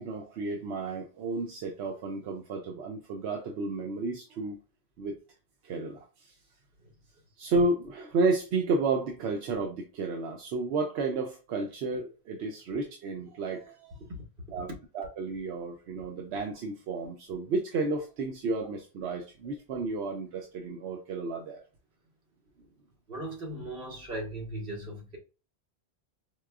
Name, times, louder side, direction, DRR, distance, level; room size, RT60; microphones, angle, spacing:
voice 1, 0.0-4.6 5.0-5.2 5.6-6.1 7.4-13.9 14.5-14.7 14.9-21.6, right 3 dB, 85° right, 0.9 m, -32 dB
voice 2, 23.1-25.2, right 1 dB, 60° right, 1.5 m, -38 dB
4.6 x 2.2 x 2.3 m
omnidirectional pair, 1.1 m